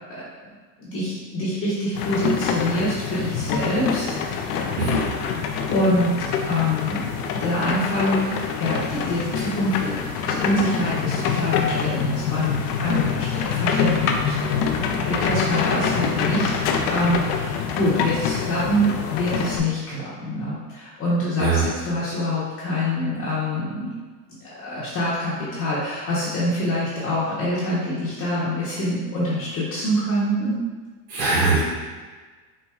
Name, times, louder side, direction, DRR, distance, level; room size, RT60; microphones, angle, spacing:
voice 1, 0.8-4.1 4.5-5.2 5.7-7.0 7.4-8.2 8.6-9.9 10.2-12.5 12.8-14.4 14.9-23.9 24.3-30.6, left 1 dB, 30° left, -9 dB, 0.7 m, -25 dB
sound 1, 1.9-19.6, left 6 dB, 75° left, 0.5 m, -25 dB
voice 2, 31.1-31.6, right 4 dB, 80° right, -5 dB, 0.8 m, -21 dB
4.3 x 2.5 x 2.3 m, 1.4 s
supercardioid pair, 130°, 47 cm